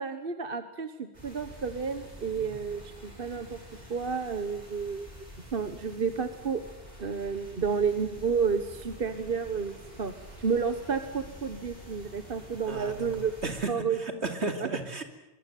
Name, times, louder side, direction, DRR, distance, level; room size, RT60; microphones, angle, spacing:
voice 1, 0.0-3.6 3.9-5.1 5.5-6.6 7.0-10.1 10.4-13.3 13.7-14.0 14.6-14.7, right 6 dB, 55° right, 10 dB, 1.4 m, -31 dB
sound 1, 1.1-13.7, equal, 35° right, 8.1 m, -48 dB
voice 2, 12.7-13.1 13.4-15.0, right 3 dB, 70° right, 6 dB, 3.1 m, -34 dB
23.5 x 22.5 x 9.3 m, 0.94 s
omnidirectional pair, 1.2 m